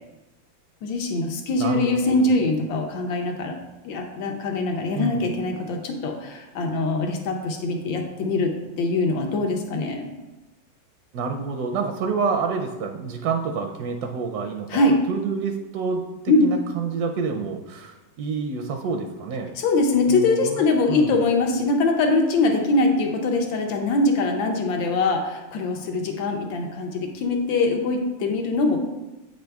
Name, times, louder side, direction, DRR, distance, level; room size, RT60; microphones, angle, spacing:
voice 1, 0.8-3.5 3.8-10.1 14.7-15.0 16.3-16.5 19.6-28.8, left 3 dB, 90° left, 3 dB, 1.5 m, -23 dB
voice 2, 1.6-2.3 4.9-5.3 11.1-16.0 16.4-19.6 20.1-20.6 20.9-21.1, right 5 dB, 75° right, 4 dB, 0.9 m, -28 dB
8.6 x 5.2 x 2.3 m, 1.1 s
omnidirectional pair, 2.1 m